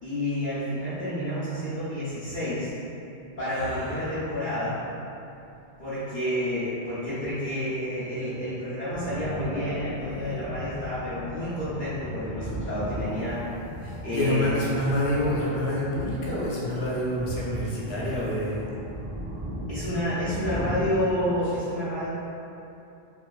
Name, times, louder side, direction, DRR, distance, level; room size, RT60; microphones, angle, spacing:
voice 1, 0.0-2.7 3.4-4.8 5.8-13.4 14.0-14.8 19.7-22.1, equal, 55° left, -14 dB, 0.8 m, -29 dB
voice 2, 3.5-4.1 13.8-18.7, left 1 dB, 85° left, -6 dB, 0.9 m, -28 dB
sound 1, 8.9-21.2, equal, 50° right, 0.4 m, -36 dB
2.8 x 2.2 x 2.3 m, 2.9 s
omnidirectional pair, 1.0 m